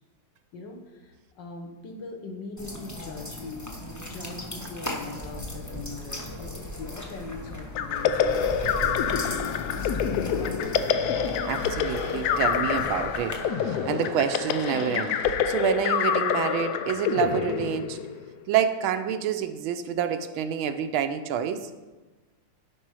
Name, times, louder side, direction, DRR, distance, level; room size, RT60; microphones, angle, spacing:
voice 1, 0.5-3.7 4.0-8.4 8.8-10.1, left 3 dB, 65° left, 2 dB, 1.7 m, -41 dB
sound 1, 2.6-13.4, left 1 dB, 15° left, 0.6 m, -37 dB
sound 2, 7.7-18.3, left 8 dB, 90° left, 0.8 m, -27 dB
Squeak, 10.6-16.1, right 6 dB, 65° right, 1.1 m, -44 dB
voice 2, 11.4-13.4 13.6-18.0 18.5-21.7, right 8 dB, 80° right, 8 dB, 1.4 m, -28 dB
11.5 x 5.4 x 4.8 m, 1.2 s
omnidirectional pair, 2.3 m